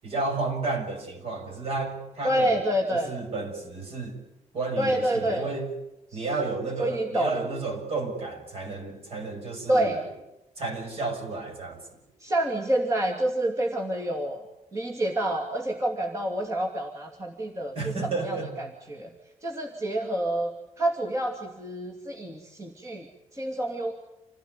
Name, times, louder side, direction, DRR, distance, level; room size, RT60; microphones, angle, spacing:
voice 1, 0.0-2.6 2.9-4.2 4.5-5.7 6.1-10.0 10.6-11.8 17.7-18.5, right 3 dB, 55° right, 5 dB, 6.9 m, -32 dB
voice 2, 2.2-3.1 4.8-5.5 6.1-6.2 6.8-7.3 9.7-10.0 12.2-14.4 14.7-19.1 19.4-20.5 20.8-23.1 23.3-23.9, right 1 dB, 25° right, 1 dB, 2.7 m, -28 dB
28.0 x 17.5 x 9.7 m, 0.93 s
wide cardioid pair, 155°, 12 cm